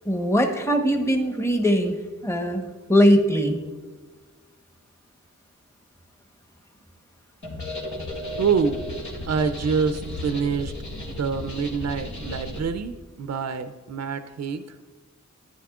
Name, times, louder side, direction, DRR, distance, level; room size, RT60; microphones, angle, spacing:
voice 1, 0.0-2.0 2.2-3.6, equal, 10° left, 4 dB, 1.0 m, -21 dB
sound 1, 7.4-12.6, left 1 dB, 80° left, 1.9 m, -34 dB
voice 2, 8.4-8.8 9.3-10.7 11.1-14.8, right 5 dB, 65° right, 9 dB, 0.5 m, -26 dB
10.0 x 10.0 x 2.4 m, 1.3 s
cardioid pair, 50°, 29 cm